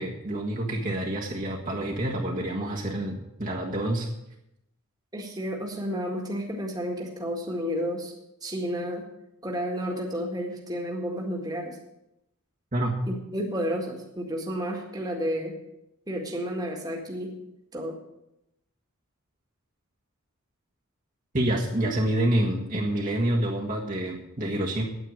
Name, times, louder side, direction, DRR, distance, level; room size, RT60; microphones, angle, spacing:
voice 1, 0.0-4.1 12.7-12.9 21.3-24.8, right 1 dB, 35° right, -2 dB, 1.7 m, -27 dB
voice 2, 5.1-8.1 8.4-9.1 9.4-11.8 13.1-15.6 16.1-17.3 17.7-18.0, equal, 15° right, 0 dB, 1.9 m, -31 dB
9.4 x 9.0 x 9.0 m, 0.85 s
head